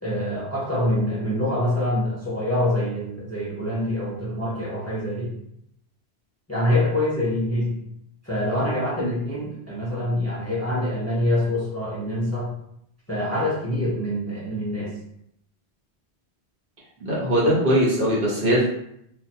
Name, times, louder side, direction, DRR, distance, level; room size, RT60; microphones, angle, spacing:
voice 1, 0.0-5.3 6.5-7.8 8.2-12.5 13.1-15.0, left 1 dB, 15° left, -6 dB, 0.8 m, -25 dB
voice 2, 17.0-18.7, equal, 50° right, -5 dB, 1.4 m, -21 dB
2.8 x 2.5 x 4.3 m, 0.74 s
omnidirectional pair, 1.1 m